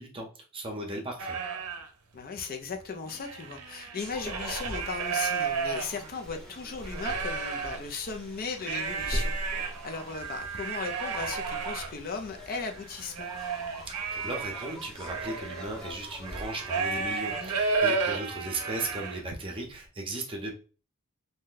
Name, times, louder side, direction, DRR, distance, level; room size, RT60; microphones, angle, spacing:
voice 1, 0.0-1.4 13.9-20.5, right 2 dB, 25° right, 0.7 m, -37 dB
sound 1, 1.2-1.9 2.4-2.5 2.7-6.3 6.8-7.8 8.6-19.4, right 5 dB, 85° right, 0.6 m, -33 dB
voice 2, 2.1-9.3 9.8-13.3, left 4 dB, 40° left, 0.4 m, -37 dB
sound 2, 3.9-17.8, equal, 5° left, 0.9 m, -41 dB
2.6 x 2.1 x 3.8 m
head